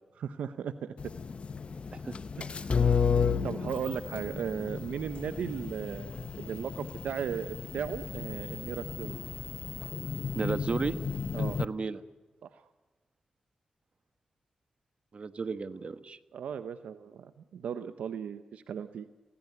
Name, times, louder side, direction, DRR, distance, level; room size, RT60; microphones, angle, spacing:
voice 1, 0.2-1.1 2.4-2.9 3.4-9.1 11.3-11.6 12.4-12.6 16.3-19.1, right 7 dB, 85° right, 11 dB, 0.7 m, -37 dB
sound 1, 1.0-11.7, left 5 dB, 55° left, 0.9 m, -33 dB
voice 2, 10.3-11.0 11.4-12.0 15.1-16.2, right 4 dB, 55° right, 11 dB, 1.3 m, -34 dB
24.0 x 17.0 x 9.5 m, 1.2 s
supercardioid pair, 45°, 2 cm